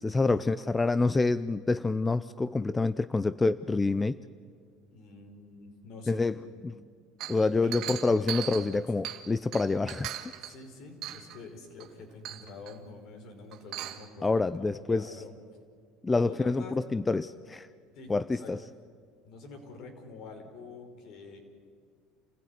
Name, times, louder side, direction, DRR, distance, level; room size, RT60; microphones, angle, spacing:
voice 1, 0.0-4.2 6.1-6.4 6.6-6.7 7.3-10.2 14.2-15.1 16.0-17.7 18.1-18.6, left 3 dB, 15° left, 15 dB, 0.6 m, -27 dB
voice 2, 4.9-6.6 7.5-9.0 10.4-15.3 16.1-16.7 17.9-18.1 18.4-18.5 19.2-21.4, left 3 dB, 60° left, 4 dB, 5.2 m, -46 dB
Chink clink, 7.2-9.3 9.5-10.6 11.0-11.4 11.8-11.9 12.2-12.7 13.5-14.1, right 12 dB, 60° right, 2.1 m, -38 dB
28.5 x 16.0 x 9.8 m, 2.1 s
supercardioid pair, 100°, 0 cm